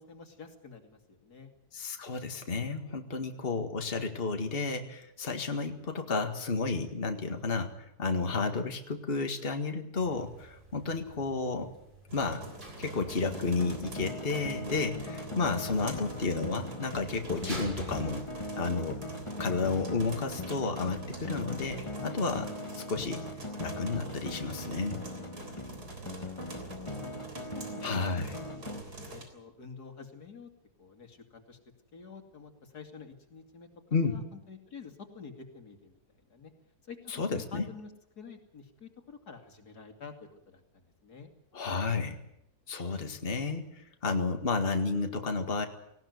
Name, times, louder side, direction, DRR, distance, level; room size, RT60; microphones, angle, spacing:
voice 1, 0.0-1.5 15.8-16.2 26.0-27.1 27.5-30.5 30.8-31.6 31.9-36.0 36.3-36.5 36.9-41.3, left 5 dB, 85° left, 5 dB, 3.1 m, -49 dB
voice 2, 1.7-7.7 8.0-11.7 12.1-12.5 12.8-18.2 18.6-19.0 19.4-23.2 23.6-25.0 27.8-28.3 33.9-34.2 37.1-37.7 41.5-42.2 42.7-45.7, left 4 dB, 40° left, 6 dB, 2.0 m, -32 dB
sound 1, 10.0-20.6, right 1 dB, 30° right, 6.6 m, -49 dB
sound 2, 12.1-29.2, right 3 dB, 85° right, 4.2 m, -45 dB
sound 3, 12.9-28.8, left 1 dB, 20° left, 1.6 m, -40 dB
18.5 x 18.0 x 9.4 m, 0.78 s
omnidirectional pair, 1.6 m